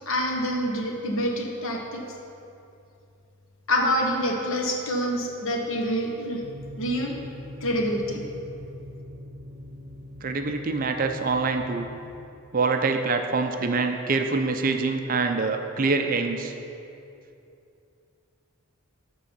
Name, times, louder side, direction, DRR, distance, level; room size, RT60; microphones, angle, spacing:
voice 1, 0.1-2.0 3.7-6.4 6.8-7.2 7.6-8.2, equal, 65° left, 1 dB, 1.1 m, -26 dB
sound 1, 6.4-12.3, equal, 70° right, 0.8 m, -42 dB
voice 2, 10.2-11.9 12.5-16.5, right 4 dB, 40° right, 5 dB, 0.5 m, -25 dB
11.0 x 3.7 x 7.1 m, 2.7 s
head